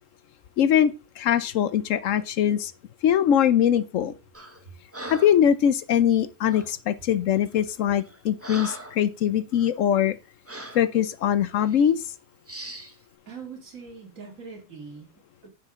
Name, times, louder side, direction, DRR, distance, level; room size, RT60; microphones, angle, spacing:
voice 1, 0.6-2.7 3.0-4.1 5.1-10.2 10.7-12.0, left 9 dB, 65° left, 0.9 m, -22 dB
Breathing, 4.3-4.6 4.9-5.4 6.5-6.8 7.4-7.6 8.0-9.1 9.5-9.7 10.5-10.9 11.6-11.8 12.5-13.0, right 1 dB, 10° right, 0.8 m, -40 dB
voice 2, 13.3-15.5, right 5 dB, 60° right, 2.7 m, -42 dB
9.9 x 6.8 x 3.6 m
omnidirectional pair, 1.5 m